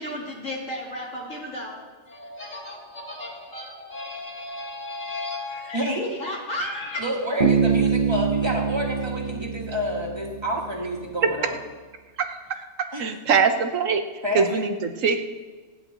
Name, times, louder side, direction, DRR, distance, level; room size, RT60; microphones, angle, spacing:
voice 1, 0.0-1.8 2.1-7.0, left 1 dB, 85° left, -3 dB, 3.4 m, -34 dB
voice 2, 7.0-11.6 12.9-13.0 14.2-14.6, equal, 20° right, -2 dB, 2.3 m, -29 dB
Bass guitar, 7.4-10.9, right 6 dB, 45° right, 1.3 m, -24 dB
voice 3, 12.2-14.0 14.3-15.2, right 5 dB, 85° right, 7 dB, 1.4 m, -23 dB
27.5 x 10.5 x 3.0 m, 1.4 s
omnidirectional pair, 1.3 m